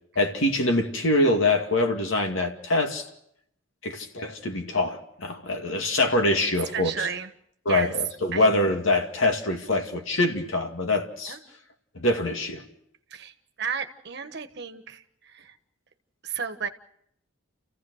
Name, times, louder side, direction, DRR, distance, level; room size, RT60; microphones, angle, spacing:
voice 1, 0.2-3.1 3.8-7.1 7.7-11.4 11.9-12.7, left 2 dB, 75° left, 2.4 m, -24 dB
voice 2, 6.7-7.3 7.7-7.9 8.3-8.5 11.3-11.4 13.1-15.6 16.2-16.7, right 6 dB, 55° right, 1.4 m, -33 dB
29.5 x 15.5 x 6.5 m
head